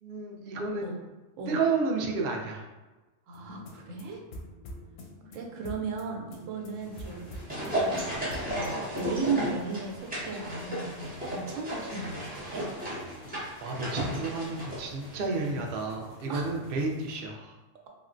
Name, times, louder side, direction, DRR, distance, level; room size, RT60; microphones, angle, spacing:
voice 1, 0.0-1.0 1.5-2.7 13.6-17.5, right 3 dB, 60° right, 0 dB, 0.6 m, -31 dB
sound 1, 3.3-9.3, equal, 90° left, 1.0 m, -46 dB
voice 2, 3.3-4.2 5.3-7.2 7.8-12.6 16.3-16.5, right 4 dB, 85° right, 1 dB, 1.0 m, -36 dB
sound 2, 6.8-17.2, left 2 dB, 65° left, 0.7 m, -51 dB
sound 3, 6.9-15.5 15.8-15.9, equal, 10° right, 0.5 m, -34 dB
3.6 x 2.1 x 2.5 m, 1.2 s
omnidirectional pair, 1.3 m